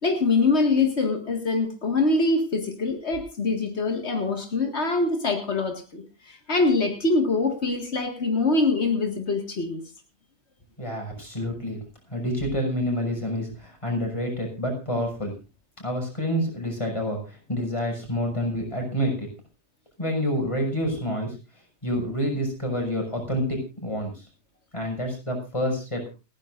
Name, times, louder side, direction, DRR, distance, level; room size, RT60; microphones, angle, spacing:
voice 1, 0.0-9.8, left 3 dB, 85° left, 3 dB, 2.2 m, -24 dB
voice 2, 10.8-11.8 12.1-15.3 15.8-19.3 20.0-21.3 21.8-24.3 24.7-26.1, equal, 30° left, 1 dB, 6.2 m, -28 dB
29.5 x 10.5 x 2.6 m, 0.30 s
omnidirectional pair, 1.1 m